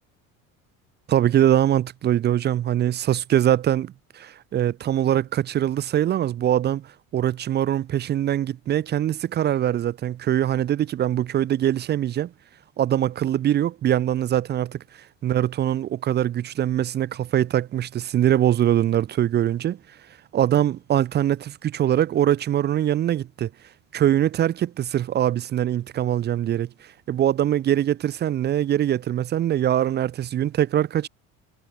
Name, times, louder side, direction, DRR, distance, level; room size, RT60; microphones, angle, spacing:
voice 1, 1.1-6.9 7.1-12.3 12.8-14.8 15.2-19.8 20.3-23.5 23.9-26.7 27.1-31.1, right 11 dB, 30° right, 0.4 m, -22 dB
cardioid pair, 110°, 35 cm